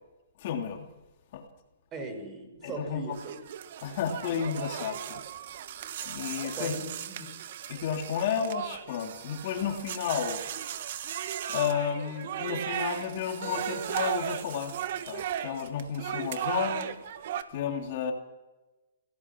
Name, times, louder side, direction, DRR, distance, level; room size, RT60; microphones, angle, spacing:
voice 1, 0.4-0.9 1.3-1.5 2.6-3.1 3.8-5.2 6.0-6.7 7.7-10.4 11.5-14.8 15.1-17.0 17.5-18.1, left 8 dB, 50° left, 3 dB, 3.0 m, -32 dB
voice 2, 1.9-3.3 5.8-6.0 6.4-7.3, right 2 dB, 25° right, 6 dB, 5.8 m, -39 dB
sound 1, 3.1-17.4, right 10 dB, 60° right, 1.5 m, -36 dB
25.0 x 17.5 x 6.1 m, 1.1 s
hypercardioid pair, 135°, 0 cm